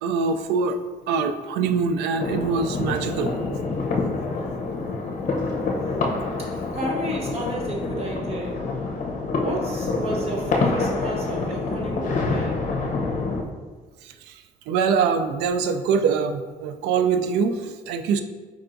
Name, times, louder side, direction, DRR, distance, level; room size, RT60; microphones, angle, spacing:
voice 1, 0.0-0.8 1.1-3.4 14.0-18.2, right 5 dB, 85° right, 8 dB, 0.4 m, -24 dB
sound 1, 2.2-13.4, left 3 dB, 45° left, 0.7 m, -27 dB
voice 2, 6.4-8.7 9.3-12.6, right 1 dB, 35° right, -2 dB, 1.1 m, -32 dB
4.7 x 4.4 x 2.5 m, 1.4 s
cardioid pair, 110°, 17 cm